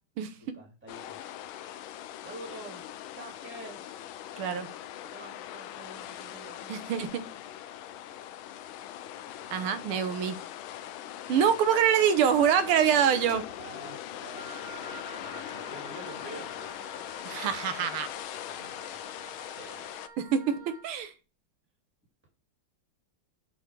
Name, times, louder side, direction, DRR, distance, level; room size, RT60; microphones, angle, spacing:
voice 1, 0.5-1.2 2.2-2.8 3.1-3.8 5.0-7.1 9.4-10.0 11.3-11.6 12.6-13.0 13.6-16.7 18.5-19.9, right 2 dB, 5° right, -1 dB, 2.0 m, -48 dB
sound 1, 0.9-20.1, left 11 dB, 80° left, 1.4 m, -41 dB
voice 2, 4.4-4.7 6.7-7.2 9.5-10.4 11.3-13.4 17.2-18.1 20.2-21.1, right 8 dB, 90° right, 10 dB, 1.7 m, -25 dB
Wind instrument woodwind instrument, 14.3-20.9, right 4 dB, 50° right, 1.4 m, -49 dB
6.3 x 4.0 x 4.6 m, 0.32 s
omnidirectional pair, 2.3 m